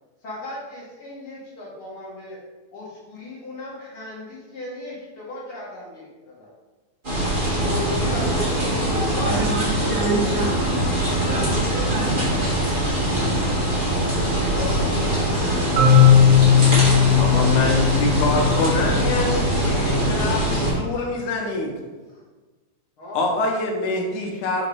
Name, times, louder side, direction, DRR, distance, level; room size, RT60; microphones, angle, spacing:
voice 1, 0.2-2.4 2.7-6.5 7.6-10.4 13.7-21.2 22.1-22.2 23.0-23.3, left 1 dB, 55° left, -5 dB, 1.9 m, -37 dB
sound 1, 7.0-20.7, right 1 dB, 25° right, 1.3 m, -22 dB
voice 2, 8.9-10.6 11.2-12.9, right 2 dB, 65° right, -3 dB, 1.8 m, -28 dB
Marimba xylophone, 15.8-19.6, left 7 dB, 80° right, 2.3 m, -17 dB
voice 3, 17.2-21.7 23.2-24.7, left 2 dB, 80° left, 1 dB, 2.3 m, -25 dB
6.1 x 5.1 x 3.3 m, 1.2 s
omnidirectional pair, 3.5 m